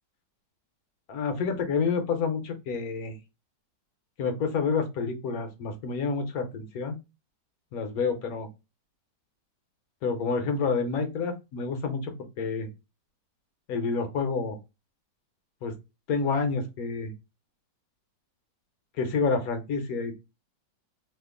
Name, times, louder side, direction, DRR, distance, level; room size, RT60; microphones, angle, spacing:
voice 1, 1.1-3.1 4.2-7.0 7.7-8.5 10.0-12.7 13.7-14.6 15.6-15.7 16.1-17.1 19.0-20.2, left 5 dB, 65° left, 7 dB, 1.1 m, -28 dB
2.8 x 2.5 x 3.6 m, 0.26 s
omnidirectional pair, 1.9 m